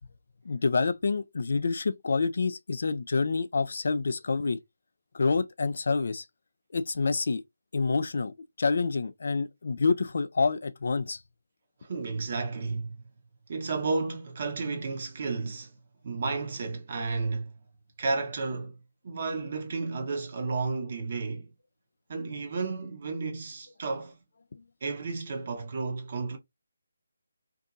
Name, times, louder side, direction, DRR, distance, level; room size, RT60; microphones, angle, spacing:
voice 1, 0.5-4.6 5.1-6.2 6.7-7.4 7.7-11.2, left 4 dB, 60° left, 0.3 m, -27 dB
voice 2, 11.8-13.0 13.5-15.7 16.0-17.6 18.0-18.8 19.0-21.5 22.1-24.2 24.8-26.4, right 4 dB, 45° right, 0.8 m, -32 dB
2.6 x 2.6 x 2.5 m
figure-of-eight pair, 150°, 0 cm